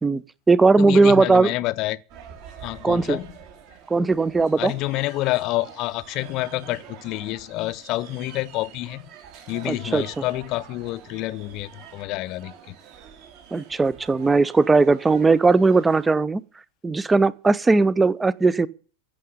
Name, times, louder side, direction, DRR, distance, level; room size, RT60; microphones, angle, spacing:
voice 1, 0.0-1.5 2.8-3.2 3.9-4.7 9.6-10.2 13.5-16.4 16.8-18.7, right 3 dB, 10° right, 0.7 m, -18 dB
voice 2, 0.8-2.0 2.6-3.3 4.6-9.1 9.5-12.7, left 18 dB, 40° left, 0.7 m, -28 dB
sound 1, 2.1-16.1, right 8 dB, 40° right, 3.7 m, -46 dB
15.0 x 6.7 x 9.8 m
figure-of-eight pair, 90°, 0 cm